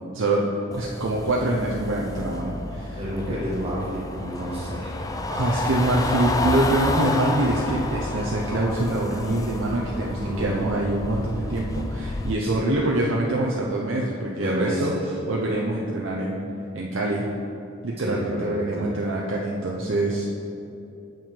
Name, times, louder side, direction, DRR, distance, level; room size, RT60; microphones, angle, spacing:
sound 1, 0.7-12.3, left 2 dB, 20° left, 0.3 m, -30 dB
voice 1, 0.7-3.0 3.3-3.4 5.3-14.9 15.3-16.5 16.7-17.3 17.8-20.3, right 2 dB, 70° right, -2 dB, 0.7 m, -25 dB
voice 2, 2.9-5.0 10.2-10.6 12.4-12.8 14.4-15.0 18.0-18.9, equal, 30° right, -6 dB, 1.7 m, -30 dB
7.4 x 5.7 x 5.2 m, 2.8 s
head